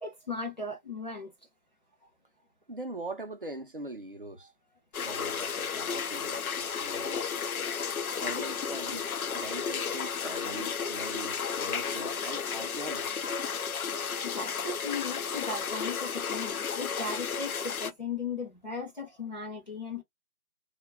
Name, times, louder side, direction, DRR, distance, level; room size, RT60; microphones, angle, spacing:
voice 1, 0.0-1.3 5.4-5.5 14.2-20.0, left 4 dB, 30° left, 0.6 m, -37 dB
voice 2, 2.7-4.5 5.0-7.2 8.2-9.1 9.3-13.1, right 2 dB, 40° right, 0.4 m, -42 dB
sound 1, 4.9-17.9, left 6 dB, 80° left, 0.6 m, -33 dB
2.2 x 2.1 x 3.4 m
figure-of-eight pair, 155°, 43 cm